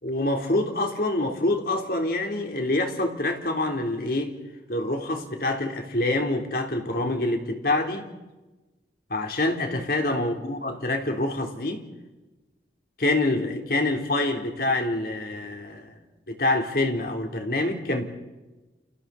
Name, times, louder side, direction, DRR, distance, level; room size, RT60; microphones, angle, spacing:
voice 1, 0.0-4.4 4.7-8.1 9.1-11.8 13.0-16.0 16.3-18.1, left 2 dB, 55° left, 3 dB, 3.7 m, -26 dB
29.5 x 29.5 x 4.3 m, 1.1 s
head